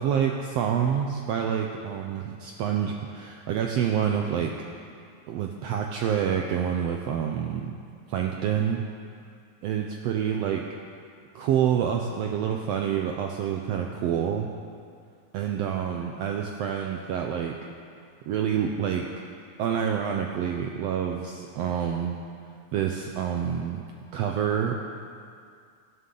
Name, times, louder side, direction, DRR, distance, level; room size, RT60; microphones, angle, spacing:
voice 1, 0.0-4.5 5.3-7.8 8.1-8.8 9.6-10.7 11.3-14.5 15.3-17.6 18.3-19.1 19.6-22.2 22.7-23.8 24.1-24.8, right 8 dB, 85° right, 2 dB, 1.4 m, -27 dB
17.5 x 11.0 x 3.9 m, 2.3 s
omnidirectional pair, 3.6 m